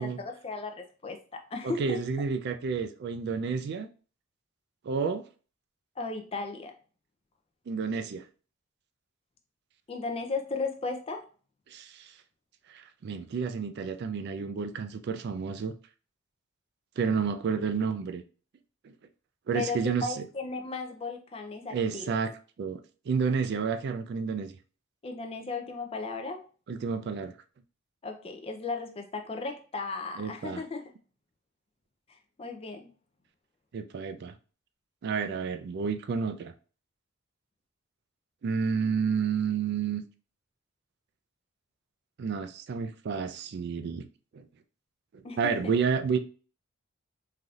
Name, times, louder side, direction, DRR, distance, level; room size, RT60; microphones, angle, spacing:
voice 1, 0.0-2.0 6.0-6.7 9.9-11.3 19.5-22.1 25.0-26.4 28.0-30.9 32.1-32.9 45.2-45.7, left 3 dB, 25° left, 0.4 m, -36 dB
voice 2, 1.6-3.9 4.8-5.3 7.7-8.2 11.7-12.1 12.7-15.7 17.0-18.2 18.8-18.9 19.5-20.2 21.7-22.3 22.6-24.5 26.7-27.3 30.2-30.6 33.7-34.3 35.0-36.5 38.4-40.0 42.2-44.1 44.3-44.5 45.1-46.2, right 5 dB, 50° right, 0.3 m, -30 dB
3.3 x 2.6 x 2.3 m
head